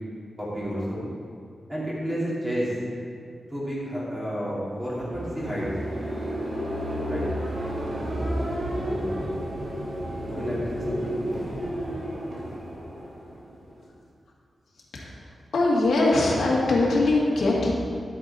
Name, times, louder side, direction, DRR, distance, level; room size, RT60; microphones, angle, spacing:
voice 1, 0.4-1.0 1.7-2.7 3.5-5.7 7.0-7.2 8.8-9.2 10.2-11.2, equal, 10° right, -8 dB, 3.1 m, -31 dB
sound 1, 4.8-13.8, equal, 85° right, 2.6 m, -31 dB
voice 2, 14.9-15.3 15.5-17.7, left 2 dB, 70° left, -4 dB, 2.2 m, -22 dB
12.0 x 8.7 x 4.5 m, 2.3 s
wide cardioid pair, 175°, 0 cm